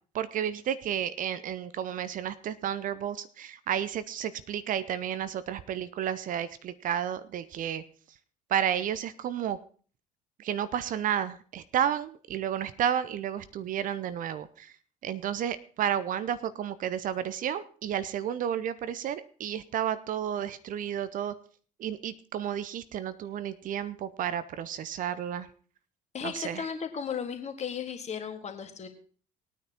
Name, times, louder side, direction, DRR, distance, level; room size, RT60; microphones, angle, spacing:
voice 1, 0.1-7.8 8.5-9.6 10.4-14.8 15.0-21.3 21.8-25.5 26.2-26.7, right 9 dB, 45° right, 14 dB, 0.7 m, -32 dB
voice 2, 26.1-28.9, left 7 dB, 35° left, 6 dB, 1.9 m, -35 dB
20.0 x 9.4 x 3.0 m, 0.41 s
figure-of-eight pair, 55°, 19 cm